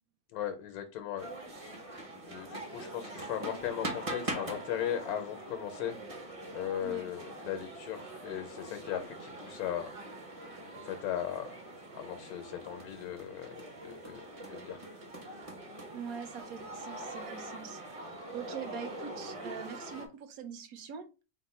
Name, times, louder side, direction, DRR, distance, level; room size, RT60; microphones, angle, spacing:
voice 1, 0.3-1.3 1.6-1.7 2.1-6.0 6.5-9.9 10.7-11.6 11.9-14.8, left 10 dB, 90° left, 6 dB, 1.1 m, -38 dB
sound 1, 1.2-20.1, right 1 dB, 35° right, 0.5 m, -43 dB
voice 2, 15.9-21.1, right 7 dB, 80° right, 7 dB, 1.1 m, -43 dB
4.1 x 2.1 x 4.2 m, 0.31 s
omnidirectional pair, 1.5 m